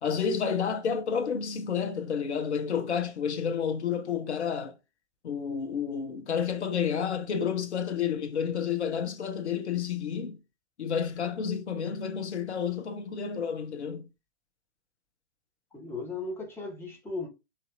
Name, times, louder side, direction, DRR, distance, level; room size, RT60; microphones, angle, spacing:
voice 1, 0.0-4.7 5.2-10.4 10.8-14.1, left 7 dB, 75° left, 0.9 m, -30 dB
voice 2, 15.7-17.3, left 3 dB, 5° left, 1.2 m, -36 dB
4.2 x 2.7 x 2.6 m
figure-of-eight pair, 105°, 35 cm